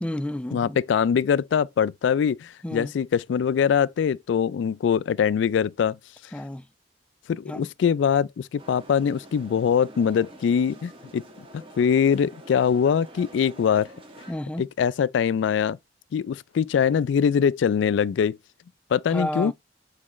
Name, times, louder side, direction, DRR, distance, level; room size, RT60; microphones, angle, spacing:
voice 1, 0.0-0.8 2.6-2.9 6.3-6.6 7.5-7.7 14.3-14.6 19.1-19.5, left 1 dB, 5° left, 0.4 m, -31 dB
voice 2, 0.5-6.0 7.3-11.2 11.5-13.9 14.6-15.8 16.1-18.4 18.9-19.5, left 7 dB, 80° left, 0.3 m, -23 dB
sound 1, 8.6-14.3, right 1 dB, 30° right, 1.7 m, -46 dB
8.5 x 4.7 x 3.1 m
head